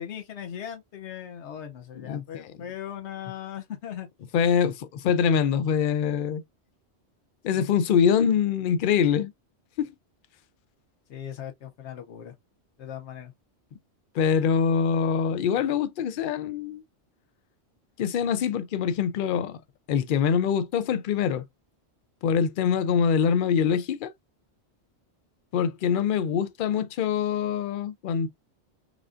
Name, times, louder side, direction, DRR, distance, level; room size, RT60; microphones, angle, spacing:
voice 1, 0.0-4.1 7.5-7.7 11.1-12.3 12.8-13.3, left 9 dB, 80° left, 1.0 m, -38 dB
voice 2, 4.3-6.4 7.4-9.3 9.8-9.9 14.1-16.8 18.0-19.6 19.9-21.4 22.2-24.1 25.5-28.3, left 7 dB, 60° left, 0.6 m, -24 dB
4.9 x 2.4 x 2.4 m
omnidirectional pair, 1.2 m